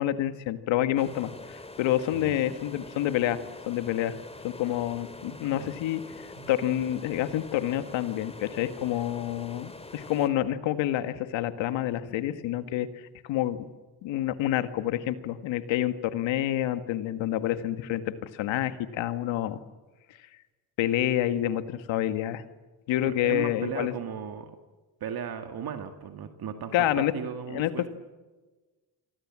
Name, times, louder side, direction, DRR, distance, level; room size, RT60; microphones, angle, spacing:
voice 1, 0.0-3.4 3.7-4.2 4.4-6.0 6.5-12.9 13.2-13.7 14.0-19.6 20.8-22.4 22.9-23.9 26.7-27.1 27.5-27.9, left 12 dB, 80° left, 10 dB, 1.9 m, -28 dB
sound 1, 1.0-10.3, left 2 dB, 15° left, 2.7 m, -45 dB
voice 2, 5.2-5.7 6.4-6.5 23.0-24.5 25.0-27.9, right 7 dB, 55° right, 7 dB, 2.2 m, -36 dB
29.5 x 24.0 x 7.6 m, 1.3 s
cardioid pair, 90°, 45 cm